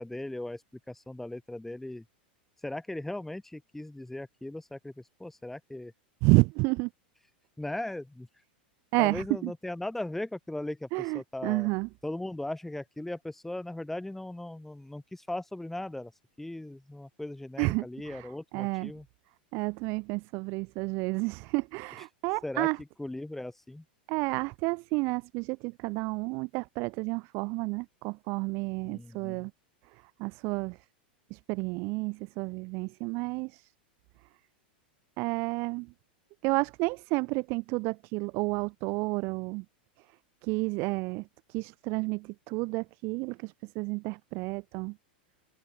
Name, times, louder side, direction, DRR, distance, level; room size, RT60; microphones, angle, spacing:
voice 1, 0.0-2.0 2.6-5.9 7.6-8.3 9.0-11.7 12.0-16.1 16.4-19.0 22.4-22.7 23.0-23.8 28.8-29.5, left 1 dB, 5° left, 6.6 m, -38 dB
voice 2, 6.2-6.9 8.9-9.5 10.9-11.9 17.6-18.3 18.5-18.9 19.5-22.8 24.1-29.5 29.9-30.8 31.3-33.7 35.2-35.9 36.4-39.6 40.4-45.0, right 27 dB, 50° right, 1.3 m, -30 dB
hypercardioid pair, 105°, 5 cm